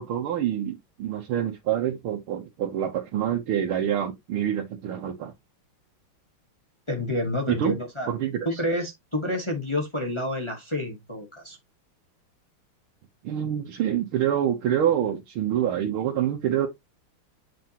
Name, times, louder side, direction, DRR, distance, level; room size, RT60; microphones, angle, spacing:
voice 1, 0.0-5.3 7.5-7.8 8.1-8.4 13.2-16.7, right 10 dB, 80° right, 1.8 m, -26 dB
voice 2, 6.9-8.1 8.4-11.6, left 1 dB, 15° left, 1.1 m, -29 dB
7.8 x 4.5 x 2.9 m
omnidirectional pair, 2.3 m